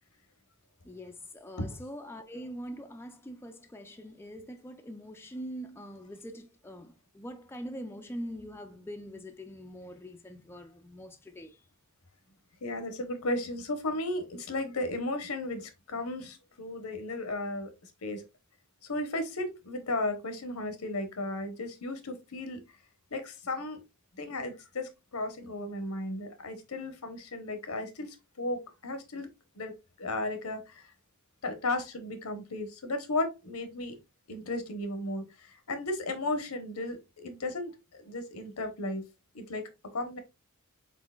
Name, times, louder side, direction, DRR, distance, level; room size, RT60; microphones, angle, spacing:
voice 1, 0.8-11.6, equal, 10° left, 0.4 m, -43 dB
voice 2, 12.6-17.7 18.0-18.2 18.8-22.6 23.1-23.8 24.2-29.3 29.5-30.9 31.4-34.0 34.3-39.0 39.3-40.2, left 2 dB, 80° left, 1.0 m, -35 dB
4.4 x 4.0 x 2.3 m
head